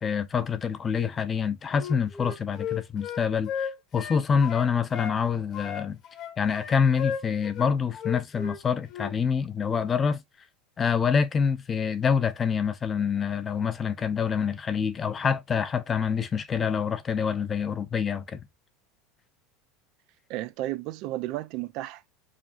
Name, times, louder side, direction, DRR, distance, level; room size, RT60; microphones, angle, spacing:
voice 1, 0.0-6.0 6.4-10.2 10.8-18.4, left 6 dB, 20° left, 0.5 m, -26 dB
Wind instrument woodwind instrument, 1.7-5.2 5.5-8.6 8.9-9.1, left 7 dB, 40° left, 1.1 m, -35 dB
voice 2, 20.3-22.1, right 16 dB, 55° right, 0.4 m, -33 dB
4.9 x 2.7 x 2.4 m
supercardioid pair, 145°, 0 cm